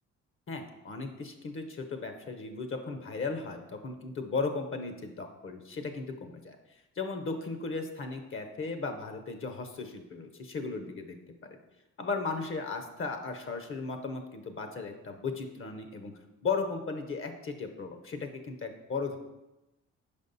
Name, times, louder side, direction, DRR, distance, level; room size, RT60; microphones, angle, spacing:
voice 1, 0.5-6.6 7.0-11.2 11.5-11.6 12.0-16.1 16.4-19.2, left 4 dB, 45° left, 6 dB, 0.8 m, -36 dB
5.2 x 5.0 x 4.0 m, 0.98 s
cardioid pair, 90°, 30 cm